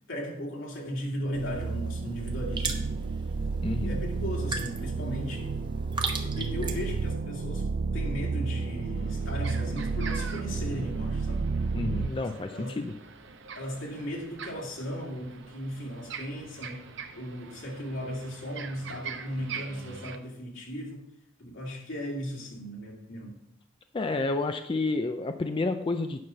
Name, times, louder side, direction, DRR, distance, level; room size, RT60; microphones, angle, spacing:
voice 1, 0.1-3.1 3.7-5.6 6.2-7.7 7.9-11.5 12.1-12.8 13.5-16.9 17.1-21.0 21.4-23.4, equal, 75° left, -1 dB, 2.5 m, -37 dB
sound 1, 1.3-7.1, right 4 dB, 25° right, 1.0 m, -38 dB
sound 2, 1.3-12.1, right 4 dB, 50° right, 0.4 m, -31 dB
voice 2, 3.6-4.0 11.7-12.9 23.9-26.3, left 3 dB, 25° left, 7 dB, 0.4 m, -30 dB
sound 3, 8.6-20.2, right 6 dB, 70° right, 0.9 m, -44 dB
9.5 x 5.7 x 5.6 m, 0.82 s
head